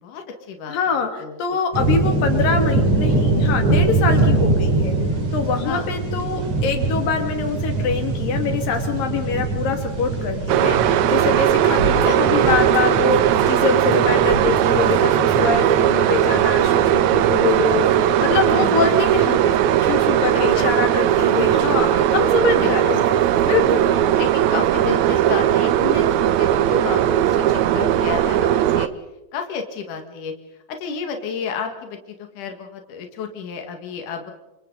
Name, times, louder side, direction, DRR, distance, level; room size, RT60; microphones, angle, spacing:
voice 1, 0.0-1.8 5.6-5.9 11.8-12.2 18.6-18.9 20.5-20.7 22.6-22.9 23.6-28.9 29.3-30.3 30.7-32.0 32.3-34.3, left 6 dB, 70° left, 4 dB, 3.4 m, -31 dB
voice 2, 0.7-5.0 5.3-23.2 23.4-23.9, left 5 dB, 90° left, 5 dB, 4.0 m, -24 dB
sound 1, 1.7-20.7, right 2 dB, 55° right, 4.7 m, -24 dB
sound 2, 10.5-28.9, right 11 dB, 70° right, 1.9 m, -18 dB
sound 3, 11.6-16.3 16.7-17.1 17.5-18.0 18.5-23.9, right 1 dB, 35° right, 4.8 m, -36 dB
29.5 x 27.0 x 4.0 m, 1.0 s
omnidirectional pair, 3.9 m